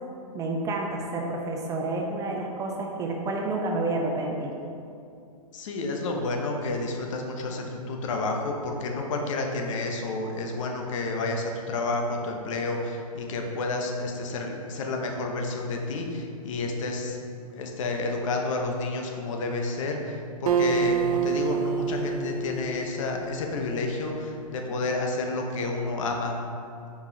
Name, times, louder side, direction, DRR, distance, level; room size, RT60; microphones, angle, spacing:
voice 1, 0.3-4.5, right 2 dB, 20° right, 0 dB, 0.6 m, -29 dB
voice 2, 5.5-17.2 17.5-26.4, left 2 dB, 60° left, 2 dB, 1.0 m, -30 dB
Acoustic guitar, 20.5-24.0, right 6 dB, 90° right, 0.5 m, -28 dB
5.4 x 4.9 x 4.0 m, 2.5 s
hypercardioid pair, 135°, 19 cm